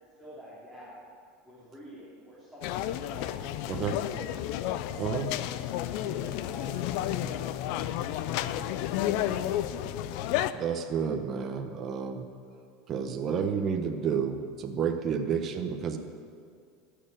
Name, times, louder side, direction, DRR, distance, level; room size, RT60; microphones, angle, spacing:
voice 1, 0.2-1.0 1.4-4.3 4.9-5.2 6.0-7.8 8.1-10.2 15.2-15.3, equal, 5° left, -10 dB, 3.7 m, -49 dB
sound 1, 2.6-10.5, left 12 dB, 65° left, 0.5 m, -31 dB
voice 2, 3.7-4.0 5.0-5.3 10.5-12.3 12.9-16.0, right 7 dB, 35° right, 5 dB, 1.1 m, -30 dB
14.5 x 6.9 x 9.0 m, 2.2 s
supercardioid pair, 130°, 0 cm